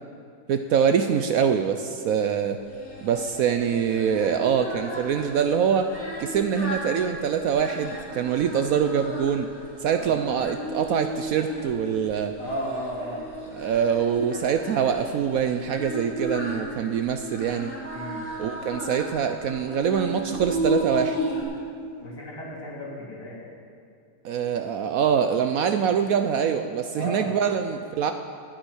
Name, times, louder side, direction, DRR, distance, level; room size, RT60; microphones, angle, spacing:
voice 1, 0.5-2.6 3.0-5.9 6.2-9.5 9.8-12.4 13.5-17.7 18.4-21.2 24.2-28.1, right 7 dB, 70° right, 7 dB, 0.9 m, -24 dB
Singing, 2.7-21.4, equal, 55° left, 3.9 m, -34 dB
voice 2, 12.4-13.2 17.9-18.2 22.0-23.4 26.9-27.3, equal, 75° left, -4 dB, 3.9 m, -34 dB
13.5 x 6.3 x 9.9 m, 2.4 s
omnidirectional pair, 1.8 m